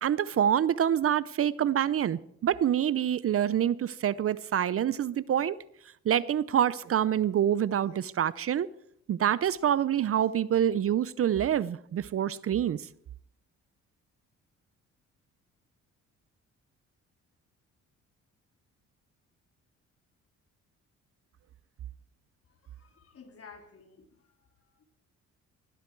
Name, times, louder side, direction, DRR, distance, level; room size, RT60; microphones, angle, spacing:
voice 1, 0.0-5.6 6.0-8.7 9.1-12.8, right 10 dB, 50° right, 0.6 m, -26 dB
voice 2, 22.5-24.3 24.7-24.8, left 5 dB, 50° left, 3.6 m, -53 dB
20.0 x 13.5 x 4.6 m
cardioid pair, 90°, 30 cm